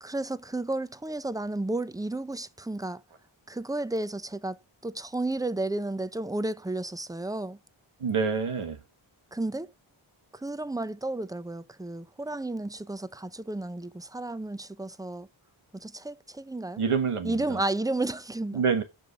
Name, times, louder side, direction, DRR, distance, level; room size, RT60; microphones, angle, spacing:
voice 1, 0.0-3.0 3.5-4.6 4.8-7.6 9.3-9.7 10.3-15.3 15.7-16.8 17.2-18.6, right 2 dB, 10° right, 0.6 m, -32 dB
voice 2, 8.0-8.8 16.8-17.6 18.5-18.8, right 5 dB, 90° right, 1.6 m, -27 dB
6.4 x 5.4 x 6.8 m
cardioid pair, 45°, 49 cm